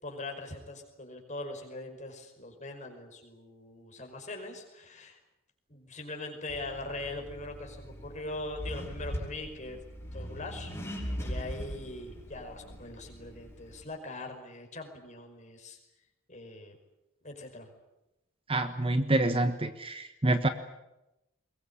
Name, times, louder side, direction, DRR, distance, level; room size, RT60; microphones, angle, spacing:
voice 1, 0.0-5.2 5.7-9.8 10.1-10.7 11.2-15.8 16.3-16.8 17.2-17.7, left 2 dB, 35° left, 3 dB, 5.5 m, -41 dB
Accelerating revving vroom, 6.5-13.8, equal, 15° left, 6.4 m, -40 dB
voice 2, 18.5-20.5, right 2 dB, 25° right, 9 dB, 1.2 m, -27 dB
23.0 x 22.0 x 9.9 m, 0.93 s
head